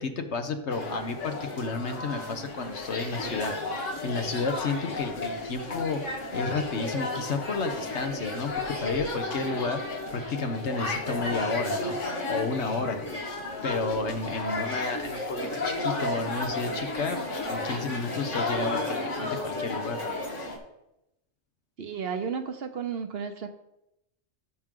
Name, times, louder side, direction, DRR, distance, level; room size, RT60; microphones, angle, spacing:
voice 1, 0.0-12.0 12.3-13.0 13.6-20.0, left 3 dB, 70° left, 7 dB, 1.3 m, -32 dB
sound 1, 0.7-20.6, left 2 dB, 90° left, 2.1 m, -33 dB
voice 2, 21.8-23.5, right 6 dB, 60° right, 7 dB, 1.0 m, -33 dB
15.5 x 6.2 x 3.8 m, 0.87 s
omnidirectional pair, 1.2 m